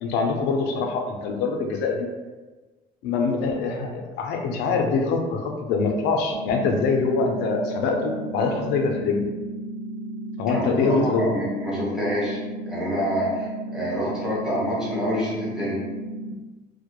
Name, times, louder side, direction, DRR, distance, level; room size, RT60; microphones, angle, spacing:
voice 1, 0.0-2.1 3.0-9.3 10.4-11.3, left 4 dB, 90° left, 3 dB, 0.4 m, -24 dB
sound 1, 6.3-16.3, right 1 dB, 85° right, 0.4 m, -34 dB
voice 2, 10.9-12.4 12.7-15.8, equal, 5° right, -8 dB, 1.1 m, -27 dB
2.2 x 2.1 x 2.9 m, 1.2 s
cardioid pair, 110°, 17 cm